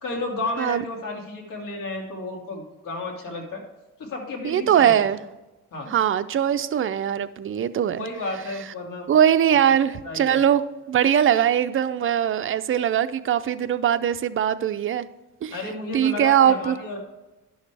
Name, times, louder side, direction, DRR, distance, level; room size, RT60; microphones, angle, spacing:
voice 1, 0.0-3.6 4.0-4.9 5.7-5.9 8.0-9.1 10.0-10.4 15.5-17.0, left 2 dB, 75° left, 0 dB, 2.4 m, -32 dB
voice 2, 4.4-5.2 5.9-8.0 9.1-10.6 10.9-15.1 15.4-15.5 15.9-16.8, right 9 dB, 40° right, 11 dB, 0.5 m, -21 dB
11.5 x 6.4 x 3.4 m, 1.1 s
cardioid pair, 110°, 33 cm